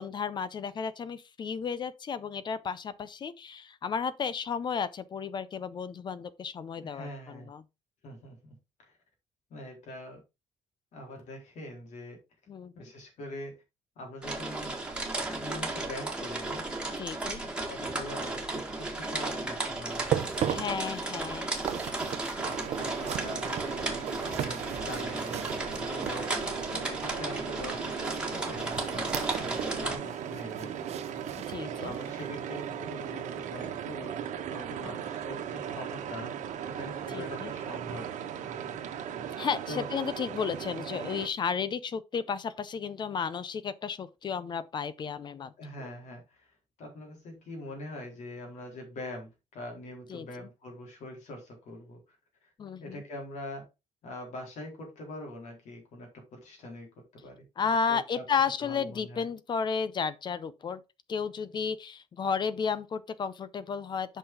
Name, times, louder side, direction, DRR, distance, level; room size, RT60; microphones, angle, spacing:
voice 1, 0.0-7.6 12.5-12.9 17.0-17.4 20.5-21.5 31.5-32.0 34.8-35.0 37.1-37.5 39.4-45.5 45.8-45.9 50.1-50.3 52.6-53.0 57.6-60.8 61.1-64.2, left 6 dB, 35° left, 0.6 m, -33 dB
voice 2, 6.8-7.5 8.0-8.9 9.5-10.2 10.9-12.2 12.7-13.6 14.0-14.8 15.4-16.7 17.7-20.1 22.7-30.7 31.8-36.3 36.6-38.1 39.7-39.8 45.6-52.2 52.4-52.5 52.8-53.7 54.0-58.2 58.6-59.3, left 1 dB, 70° left, 4.2 m, -43 dB
sound 1, 14.2-30.0, right 2 dB, 10° right, 1.7 m, -34 dB
sound 2, 19.9-26.6 28.0-29.8 30.1-32.1 32.5-32.7 33.2-33.3, right 10 dB, 60° right, 0.7 m, -37 dB
sound 3, 22.4-41.3, right 8 dB, 85° right, 1.5 m, -38 dB
8.2 x 5.8 x 3.7 m
cardioid pair, 155°, 13 cm